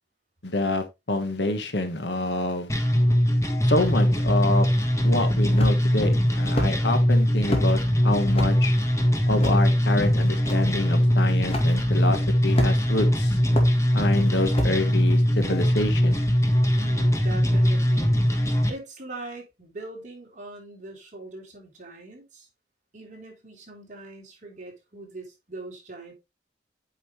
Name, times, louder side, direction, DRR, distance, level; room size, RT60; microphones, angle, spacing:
voice 1, 0.4-2.7 3.7-4.7 5.0-7.8 8.0-8.7 9.3-13.4 13.9-16.1, left 2 dB, 75° left, 1.3 m, -27 dB
sound 1, 2.7-18.7, equal, 15° left, 1.3 m, -21 dB
sound 2, 5.6-6.0 6.6-6.7 7.5-7.7 8.3-8.5 9.4-9.6 10.5-10.6 11.5-11.7 12.6-13.0 13.6-13.7 14.5-14.8, left 1 dB, 35° left, 2.0 m, -28 dB
voice 2, 16.7-18.1 18.7-22.5 22.9-26.1, right 2 dB, 45° right, 3.3 m, -41 dB
8.5 x 5.5 x 3.1 m
head